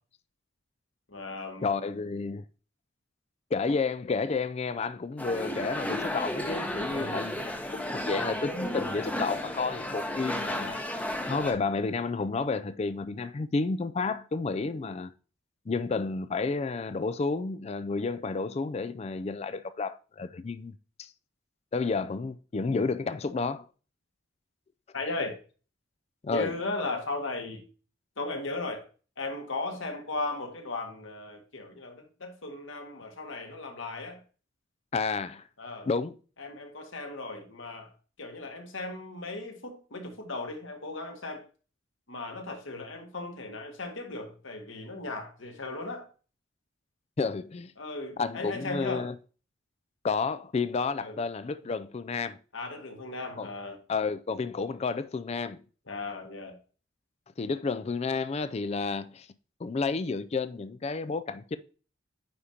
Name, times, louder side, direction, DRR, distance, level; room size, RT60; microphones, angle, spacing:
voice 1, 1.1-1.9 6.9-7.4 14.7-14.9 24.9-25.3 26.3-27.6 28.2-28.8 29.2-34.2 35.6-35.9 36.4-37.9 38.2-41.4 42.1-46.1 47.8-49.1 51.0-51.2 52.5-53.8 55.9-56.6, left 2 dB, 70° left, 1.7 m, -37 dB
voice 2, 1.6-2.4 3.5-10.8 11.3-15.1 15.7-20.7 21.0-21.1 21.7-23.7 26.2-26.5 34.9-35.4 35.9-36.2 47.2-47.7 48.2-49.2 50.0-52.4 53.4-53.5 53.9-55.6 57.4-59.3 59.6-61.6, left 4 dB, 30° left, 0.3 m, -31 dB
sound 1, 5.2-11.5, left 1 dB, 5° left, 0.8 m, -33 dB
9.4 x 5.0 x 2.8 m
head